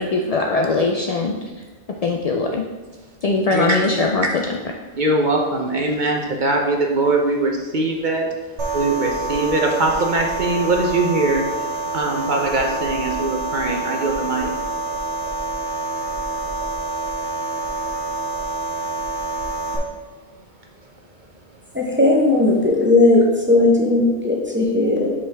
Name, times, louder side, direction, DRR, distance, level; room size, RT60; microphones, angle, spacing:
voice 1, 0.0-1.3 2.0-2.6 3.2-4.4, left 3 dB, 65° left, 1 dB, 0.3 m, -20 dB
voice 2, 3.5-3.9 4.9-8.3 8.7-14.5, right 2 dB, 50° right, 1 dB, 0.8 m, -21 dB
sound 1, 8.6-19.8, right 3 dB, 70° right, 1.2 m, -27 dB
voice 3, 21.7-25.1, left 2 dB, 10° right, -2 dB, 0.7 m, -16 dB
5.4 x 5.4 x 3.4 m, 1.2 s
omnidirectional pair, 1.2 m